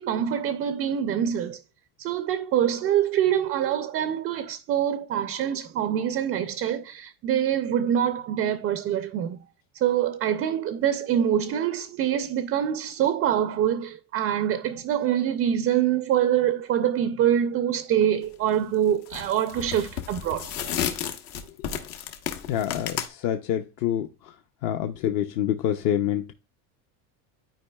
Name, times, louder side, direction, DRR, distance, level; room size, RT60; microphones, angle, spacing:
voice 1, 0.0-1.6 2.0-9.4 9.8-20.5, right 10 dB, 30° right, 0.4 m, -25 dB
sound 1, 18.2-18.5 19.1-23.1, left 9 dB, 70° left, 1.3 m, -32 dB
voice 2, 22.5-24.3 24.6-26.3, left 10 dB, 50° left, 0.6 m, -27 dB
11.5 x 4.8 x 2.2 m
supercardioid pair, 145°, 45 cm